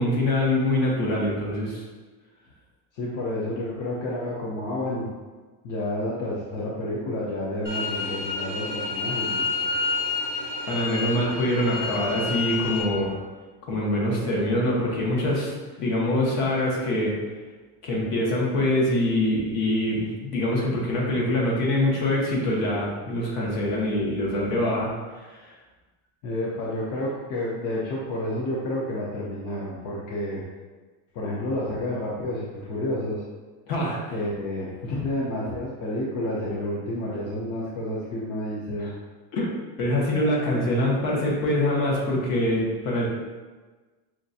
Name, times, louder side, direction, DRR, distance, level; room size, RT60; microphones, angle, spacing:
voice 1, 0.0-1.8 10.7-13.2 13.6-17.1 17.8-24.9 25.3-25.4 33.7-34.0 38.8-38.9 39.3-39.5 39.8-43.1, left 1 dB, 70° left, -3 dB, 1.3 m, -24 dB
voice 2, 2.9-5.1 5.6-9.5 26.2-30.4 31.1-33.2 34.1-38.9, left 1 dB, 50° left, -4 dB, 0.7 m, -30 dB
sound 1, 7.6-12.8, left 4 dB, 30° left, 1.2 m, -29 dB
5.7 x 2.5 x 2.7 m, 1.3 s
cardioid pair, 155°, 40 cm